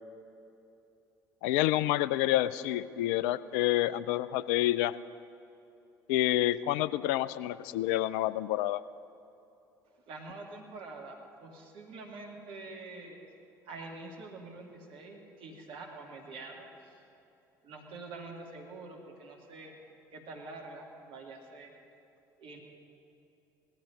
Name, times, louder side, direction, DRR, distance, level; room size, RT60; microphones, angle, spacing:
voice 1, 1.4-4.9 6.1-8.8, left 14 dB, 65° left, 17 dB, 0.4 m, -28 dB
voice 2, 10.1-13.2 13.7-16.7 17.6-19.7 20.1-21.7 22.4-22.6, right 3 dB, 55° right, 0 dB, 2.6 m, -46 dB
18.5 x 13.5 x 5.3 m, 2.8 s
figure-of-eight pair, 55°, 11 cm